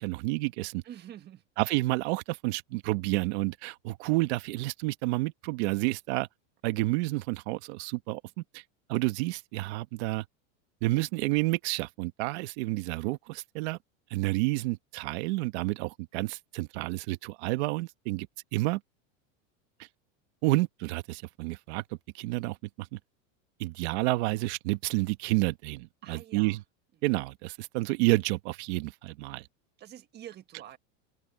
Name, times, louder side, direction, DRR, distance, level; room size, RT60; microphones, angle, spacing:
voice 1, 0.0-0.8 1.6-6.3 6.6-8.6 8.9-10.2 10.8-13.8 14.1-18.3 18.5-18.8 20.4-21.8 22.1-23.0 23.6-26.6 27.0-29.4, right 21 dB, 55° right, 1.7 m, -30 dB
voice 2, 0.8-1.4 26.0-26.6 29.8-30.8, right 11 dB, 25° right, 1.6 m, -46 dB
open air
supercardioid pair, 155°, 38 cm